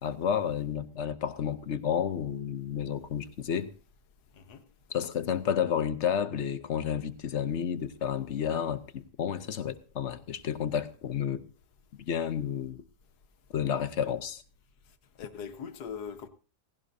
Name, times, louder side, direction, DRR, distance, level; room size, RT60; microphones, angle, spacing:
voice 1, 0.0-3.7 4.9-11.4 12.1-12.8 13.5-14.4, left 8 dB, 50° left, 1.0 m, -31 dB
voice 2, 15.2-16.3, left 7 dB, 70° left, 1.6 m, -40 dB
17.5 x 16.5 x 2.7 m
omnidirectional pair, 1.8 m